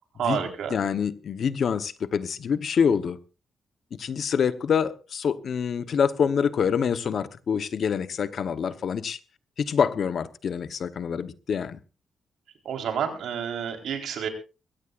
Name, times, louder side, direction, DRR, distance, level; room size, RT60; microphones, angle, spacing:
voice 1, 0.1-0.9 12.6-14.3, right 8 dB, 80° right, 4.0 m, -29 dB
voice 2, 0.7-3.2 3.9-9.2 9.6-11.8, left 7 dB, 50° left, 0.9 m, -26 dB
22.5 x 17.0 x 2.5 m
wide cardioid pair, 155°, 0 cm